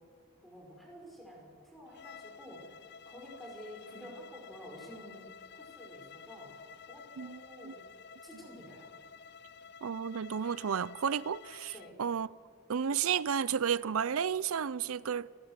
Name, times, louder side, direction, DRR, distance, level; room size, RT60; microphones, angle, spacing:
voice 1, 0.4-5.3 5.5-6.6 6.9-7.8 8.2-8.9 11.7-12.0, equal, ahead, 5.3 m, -50 dB
Bowed string instrument, 1.9-11.9, left 6 dB, 55° left, 0.6 m, -52 dB
voice 2, 7.2-7.7 9.8-11.7 12.0-12.3 12.7-15.3, right 7 dB, 85° right, 0.5 m, -32 dB
30.0 x 18.0 x 7.5 m
head